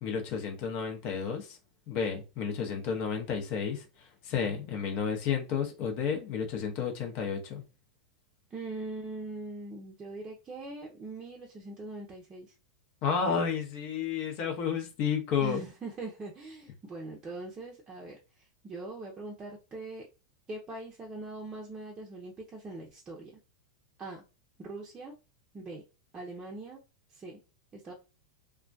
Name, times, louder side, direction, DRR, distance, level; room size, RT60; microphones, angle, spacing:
voice 1, 0.0-1.6 1.9-7.6 13.0-15.6, left 6 dB, 50° left, 0.8 m, -31 dB
voice 2, 8.5-12.5 15.4-20.1 20.5-23.4 24.0-24.2 24.6-25.1 25.5-25.8 26.1-26.8 27.1-27.4 27.7-27.9, right 2 dB, 25° right, 0.6 m, -42 dB
2.2 x 2.1 x 2.5 m
hypercardioid pair, 110°, 3 cm